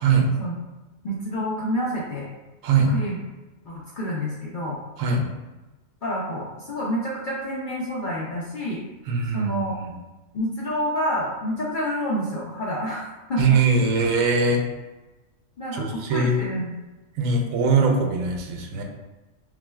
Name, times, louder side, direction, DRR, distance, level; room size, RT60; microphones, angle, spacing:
voice 1, 1.0-2.3 2.9-3.2 3.6-4.8 6.0-8.8 9.3-9.8 10.3-13.6 15.6-16.8, equal, 60° left, -5 dB, 0.5 m, -28 dB
voice 2, 2.6-2.9 5.0-5.3 9.1-9.5 9.8-9.9 13.4-14.6 15.7-16.4 17.2-18.8, right 4 dB, 80° right, 2 dB, 1.0 m, -21 dB
5.7 x 2.2 x 2.3 m, 1.1 s
omnidirectional pair, 1.4 m